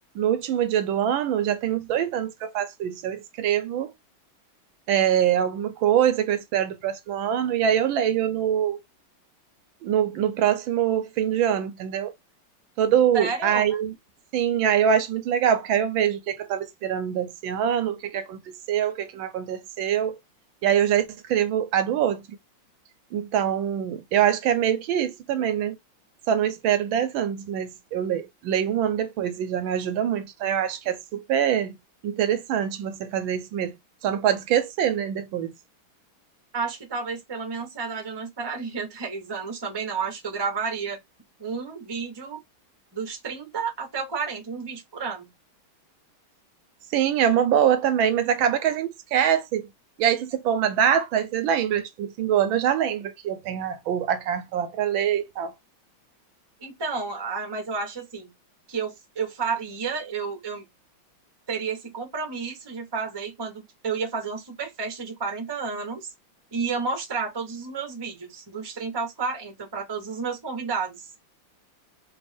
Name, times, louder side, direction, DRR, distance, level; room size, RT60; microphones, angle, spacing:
voice 1, 0.1-3.9 4.9-8.8 9.8-12.1 12.8-13.9 14.3-18.4 18.7-20.2 20.6-22.2 23.1-25.8 26.3-31.8 32.0-33.8 34.0-35.5 46.9-49.7 50.0-55.5, right 9 dB, 75° right, 1.3 m, -24 dB
voice 2, 13.1-13.8 36.5-41.0 41.4-42.4 42.9-45.3 56.6-58.3 58.7-60.7 61.5-66.1 66.5-71.1, right 5 dB, 20° right, 0.6 m, -31 dB
3.4 x 2.7 x 3.3 m
omnidirectional pair, 2.3 m